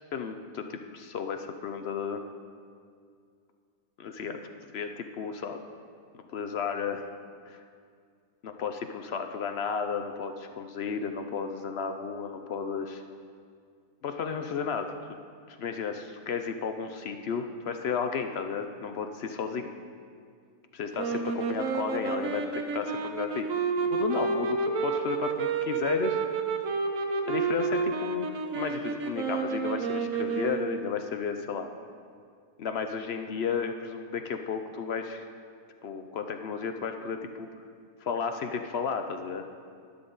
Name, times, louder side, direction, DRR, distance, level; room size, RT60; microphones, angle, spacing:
voice 1, 0.1-2.2 4.0-4.4 4.7-5.6 6.1-7.1 7.5-7.6 8.4-13.0 14.0-15.2 15.5-19.7 20.7-23.5 23.8-26.2 27.3-28.3 28.5-31.7 32.6-35.2 35.8-37.5 38.0-39.5, left 6 dB, 60° left, 6 dB, 0.6 m, -33 dB
sound 1, 20.9-31.0, right 4 dB, 65° right, 1.2 m, -30 dB
11.5 x 10.5 x 3.9 m, 2.2 s
omnidirectional pair, 1.6 m